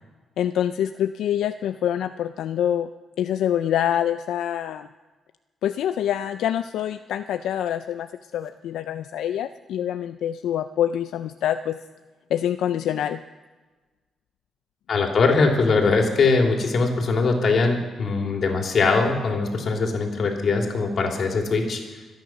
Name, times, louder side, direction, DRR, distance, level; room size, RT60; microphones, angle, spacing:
voice 1, 0.4-2.9 3.2-4.9 5.6-8.1 8.3-11.8 12.3-13.2, left 10 dB, 90° left, 10 dB, 0.4 m, -25 dB
voice 2, 14.9-21.8, left 4 dB, 55° left, 2 dB, 3.0 m, -21 dB
25.0 x 9.4 x 6.0 m, 1.3 s
cardioid pair, 95°, 0 cm